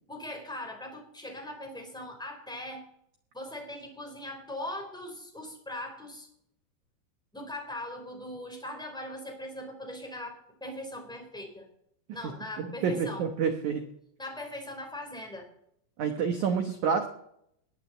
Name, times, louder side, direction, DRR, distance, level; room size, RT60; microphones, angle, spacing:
voice 1, 0.1-2.9 3.3-6.3 7.3-11.7 12.1-13.2 14.2-15.5, left 1 dB, ahead, 3 dB, 2.5 m, -40 dB
voice 2, 12.6-13.9 16.0-17.1, right 6 dB, 75° right, 6 dB, 1.8 m, -28 dB
20.0 x 9.3 x 7.8 m, 0.74 s
omnidirectional pair, 5.2 m